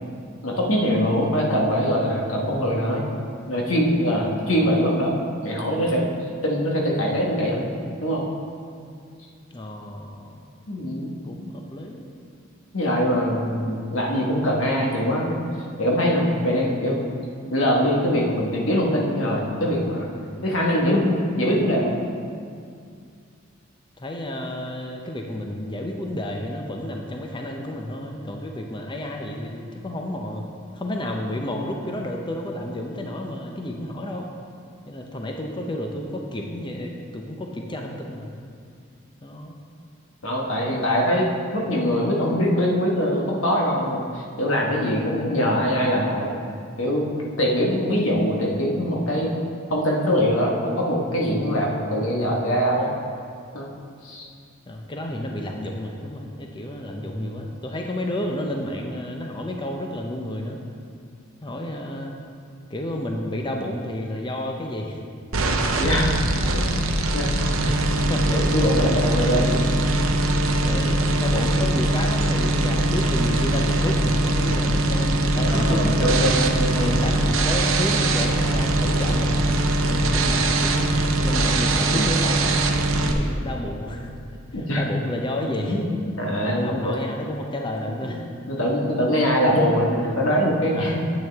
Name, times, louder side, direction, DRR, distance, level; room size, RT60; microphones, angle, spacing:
voice 1, 0.4-3.0 3.5-6.1 6.4-7.7 8.0-8.2 10.7-11.1 12.7-15.4 15.8-17.0 17.5-20.1 20.4-21.9 40.2-46.4 46.8-49.3 49.7-52.9 53.5-53.7 54.0-54.3 57.0-57.4 65.8-66.2 66.5-66.7 67.1-67.3 68.3-69.6 75.4-77.0 84.5-84.8 85.6-85.9 86.2-86.9 87.9-88.1 88.5-91.1, equal, 90° left, -2 dB, 1.5 m, -23 dB
voice 2, 9.5-10.4 11.2-12.1 24.0-30.5 30.7-34.3 34.9-38.3 39.2-39.6 54.7-60.6 61.4-62.1 62.7-65.0 66.5-66.7 67.3-68.4 70.6-76.4 76.8-79.4 79.8-81.0 81.2-82.5 83.0-84.1 84.5-85.8 86.6-88.3 90.7-91.0, left 1 dB, 25° left, 1 dB, 0.6 m, -31 dB
sound 1, 65.3-83.1, right 2 dB, 75° right, 0.7 m, -21 dB
9.3 x 8.4 x 3.5 m, 2.3 s
head